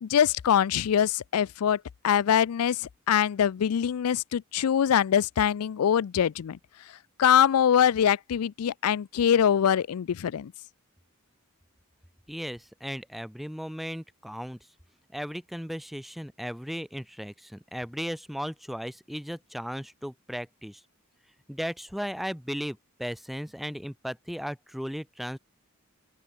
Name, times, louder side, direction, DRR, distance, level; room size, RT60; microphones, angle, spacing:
voice 1, 0.0-6.6 7.2-10.5, left 9 dB, 85° left, 0.4 m, -23 dB
voice 2, 12.3-14.6 15.1-20.8 21.5-25.4, equal, ahead, 0.7 m, -36 dB
open air
head